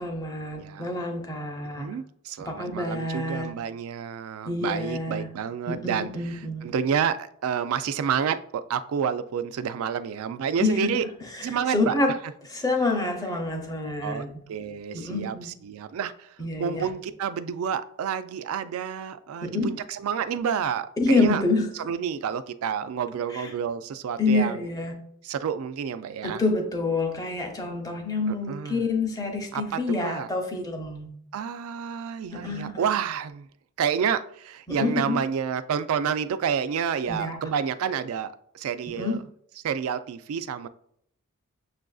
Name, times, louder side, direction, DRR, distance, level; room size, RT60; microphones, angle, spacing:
voice 1, 0.0-1.9 2.4-3.5 4.5-5.3 5.7-6.7 10.6-10.9 11.2-12.1 12.4-14.4 14.9-15.5 16.4-16.9 19.4-19.8 21.0-21.8 23.3-23.5 24.2-25.0 26.2-31.1 32.3-32.9 34.7-35.2 37.1-37.4 38.9-39.2, left 2 dB, 15° left, 0.6 m, -27 dB
voice 2, 0.6-0.9 1.8-6.1 6.6-11.0 11.4-11.9 14.0-14.2 14.5-15.4 15.6-16.3 16.6-21.4 21.9-24.6 25.2-26.4 28.3-28.8 29.5-30.3 31.3-33.5 33.8-39.2 39.6-40.7, right 7 dB, 70° right, 0.3 m, -29 dB
6.7 x 2.5 x 2.3 m
head